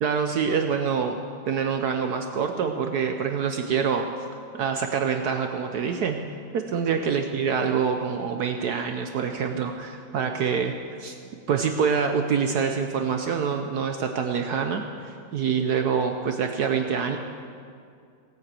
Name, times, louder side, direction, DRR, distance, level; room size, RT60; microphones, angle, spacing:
voice 1, 0.0-4.1 4.5-6.2 6.5-11.2 11.5-17.2, right 6 dB, 65° right, 5 dB, 1.2 m, -26 dB
17.5 x 8.9 x 7.5 m, 2.3 s
omnidirectional pair, 2.0 m